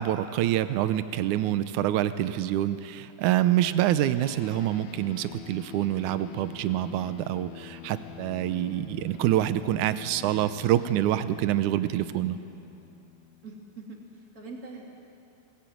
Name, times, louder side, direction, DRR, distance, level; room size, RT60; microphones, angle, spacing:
voice 1, 0.0-12.4, right 12 dB, 80° right, 12 dB, 1.8 m, -26 dB
sound 1, 4.2-13.9, left 13 dB, 85° left, 1.6 m, -46 dB
voice 2, 13.4-14.9, right 3 dB, 25° right, 0 dB, 2.9 m, -43 dB
22.0 x 19.5 x 9.4 m, 2.7 s
omnidirectional pair, 4.4 m